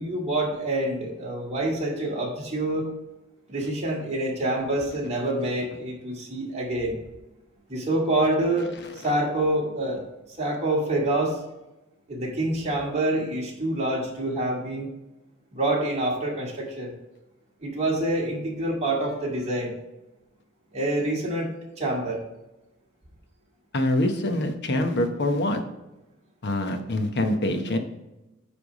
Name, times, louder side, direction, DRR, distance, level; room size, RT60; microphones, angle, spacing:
voice 1, 0.0-2.9 3.5-7.0 7.7-10.1 10.4-11.4 12.1-14.9 15.5-16.9 17.6-19.7 20.7-21.5 21.8-22.2, right 1 dB, 30° right, -3 dB, 2.2 m, -26 dB
voice 2, 23.7-25.6 26.4-27.8, left 1 dB, 55° left, 6 dB, 1.0 m, -25 dB
9.5 x 3.5 x 5.1 m, 0.98 s
head